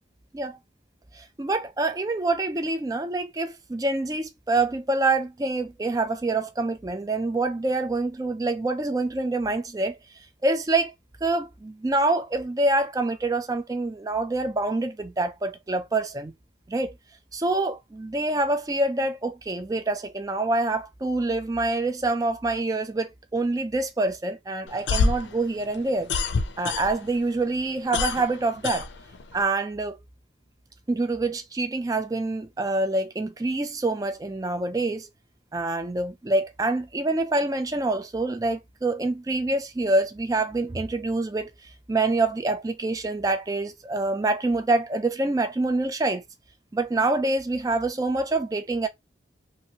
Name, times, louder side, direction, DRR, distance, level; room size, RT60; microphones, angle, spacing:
voice 1, 1.1-10.0 10.4-10.9 11.2-16.3 16.7-17.0 17.3-26.1 26.6-28.9 29.3-30.0 30.9-35.1 35.5-41.5 41.9-46.2 46.7-48.9, right 2 dB, 20° right, 0.3 m, -26 dB
sound 1, 24.7-27.2 27.5-29.4, left 4 dB, 80° left, 0.4 m, -26 dB
2.9 x 2.5 x 2.8 m
head